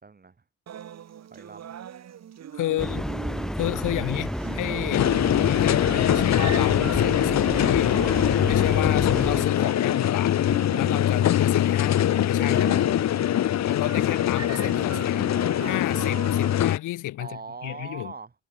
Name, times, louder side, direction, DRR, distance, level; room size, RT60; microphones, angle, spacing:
voice 1, 0.0-0.4 1.3-1.7 2.7-3.0 12.5-12.8 17.2-18.3, right 4 dB, 30° right, 4.6 m, -42 dB
sound 1, 0.7-16.6, right 9 dB, 60° right, 3.1 m, -41 dB
voice 2, 2.5-3.1 3.6-7.9 8.4-10.4 10.7-12.7 13.6-15.3 15.6-17.3 17.6-18.1, left 15 dB, 85° left, 4.5 m, -31 dB
sound 2, 2.8-9.5, equal, ahead, 4.6 m, -31 dB
sound 3, 4.9-16.8, left 11 dB, 60° left, 1.2 m, -22 dB
cardioid pair, 90°, 30 cm